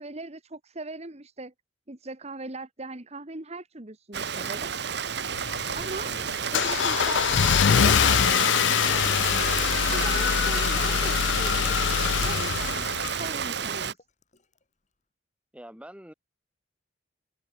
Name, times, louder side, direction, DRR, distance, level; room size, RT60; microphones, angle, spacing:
voice 1, 0.0-1.5 1.9-4.7 5.7-6.2 6.5-9.6 9.9-11.8 12.2-12.9 13.2-14.0, right 2 dB, 35° right, 1.6 m, -39 dB
Rain, 4.1-13.9, right 7 dB, 60° right, 1.4 m, -31 dB
Car / Engine starting, 5.3-13.5, left 8 dB, 65° left, 0.4 m, -24 dB
Liquid, 5.3-7.3 7.8-14.7, left 5 dB, 40° left, 4.2 m, -56 dB
voice 2, 6.0-6.5 15.5-16.1, equal, 5° right, 3.8 m, -46 dB
head